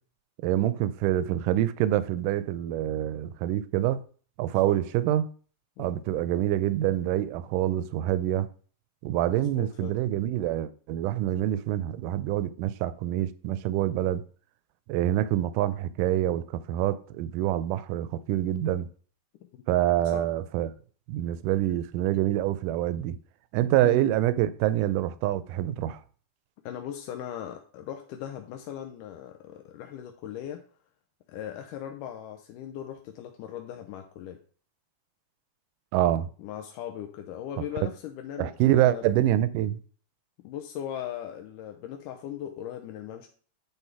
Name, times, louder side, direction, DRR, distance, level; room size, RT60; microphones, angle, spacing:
voice 1, 0.4-4.0 4.4-5.3 5.8-8.5 9.0-14.2 14.9-18.9 19.7-20.7 21.1-23.2 23.5-26.0 35.9-36.3 38.4-39.8, right 13 dB, 80° right, 2.1 m, -26 dB
voice 2, 9.3-10.0 19.5-19.6 20.1-20.3 23.8-24.0 26.6-30.6 31.3-34.4 36.4-39.0 40.4-43.3, left 10 dB, 85° left, 2.2 m, -39 dB
10.0 x 3.7 x 4.6 m
omnidirectional pair, 3.8 m